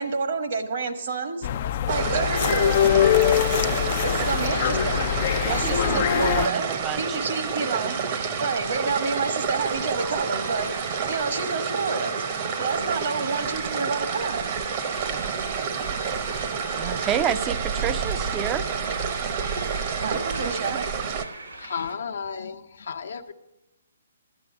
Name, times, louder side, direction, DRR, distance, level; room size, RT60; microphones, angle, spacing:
voice 1, 0.0-1.5 1.9-2.8 4.0-5.1 5.5-6.7 7.0-8.0 8.4-10.7 11.1-12.1 12.6-14.4 20.0-20.8, right 4 dB, 65° right, 7 dB, 1.3 m, -28 dB
sound 1, 1.4-6.5, left 10 dB, 45° left, 0.4 m, -23 dB
sound 2, 1.9-21.3, right 6 dB, 40° right, 0.9 m, -29 dB
sound 3, 2.4-22.0, right 2 dB, 85° right, 2.1 m, -39 dB
voice 2, 5.4-7.2 15.0-15.8 16.7-18.6 20.1-20.8, right 9 dB, 20° right, 12 dB, 0.5 m, -31 dB
voice 3, 21.5-23.3, left 6 dB, 70° left, 4 dB, 0.9 m, -33 dB
12.0 x 8.8 x 6.0 m, 0.94 s
hypercardioid pair, 135°, 0 cm